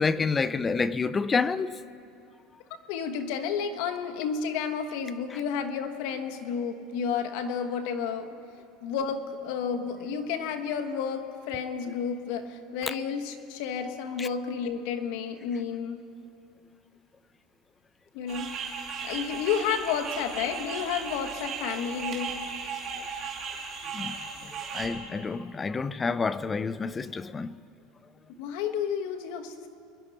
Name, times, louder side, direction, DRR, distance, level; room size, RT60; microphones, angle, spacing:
voice 1, 0.0-1.8 5.3-5.4 14.2-14.3 23.9-27.6, left 4 dB, 20° left, 0.4 m, -29 dB
voice 2, 2.9-8.3 8.8-16.0 18.1-18.5 19.0-22.4 28.4-29.7, left 7 dB, 70° left, 1.2 m, -31 dB
sound 1, 18.3-24.9, right 5 dB, 35° right, 2.6 m, -36 dB
24.5 x 11.0 x 4.2 m
supercardioid pair, 140°, 0 cm